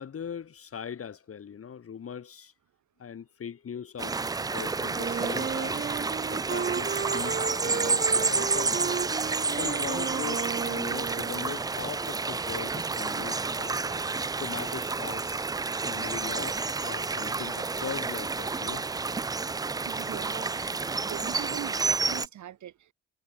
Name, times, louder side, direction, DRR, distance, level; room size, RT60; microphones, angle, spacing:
voice 1, 0.0-2.5 3.0-5.9 6.3-8.9 9.6-15.5 15.8-18.9, left 7 dB, 50° left, 3.8 m, -40 dB
sound 1, 4.0-22.3, right 4 dB, 15° right, 0.3 m, -30 dB
Wind instrument woodwind instrument, 4.9-11.7, right 7 dB, 30° right, 0.8 m, -34 dB
voice 2, 19.9-22.9, right 11 dB, 70° right, 4.9 m, -41 dB
cardioid pair, 90°, 30 cm